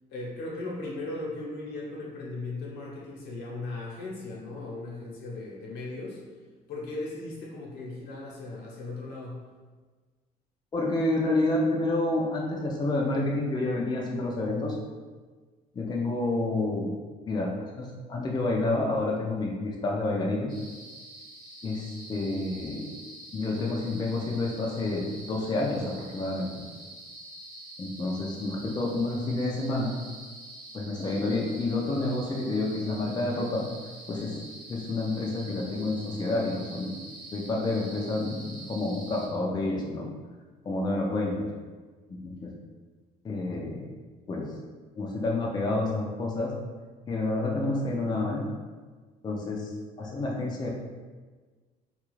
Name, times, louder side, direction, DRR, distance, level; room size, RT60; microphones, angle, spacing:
voice 1, 0.1-6.2 6.7-9.4, left 2 dB, 80° left, -4 dB, 0.9 m, -37 dB
voice 2, 10.7-14.8 15.7-17.0 17.3-20.5 21.6-22.9 23.3-26.6 27.8-29.9 30.7-33.6 34.1-36.9 37.3-40.1 40.6-41.5 42.1-42.5 43.2-43.9 44.3-44.5 45.0-46.5 47.1-48.4 49.2-49.7 50.0-50.7, left 2 dB, 25° left, -2 dB, 0.4 m, -29 dB
sound 1, 20.5-39.3, right 2 dB, 20° right, 1.0 m, -46 dB
2.9 x 2.4 x 3.1 m, 1.4 s
cardioid pair, 110°, 17 cm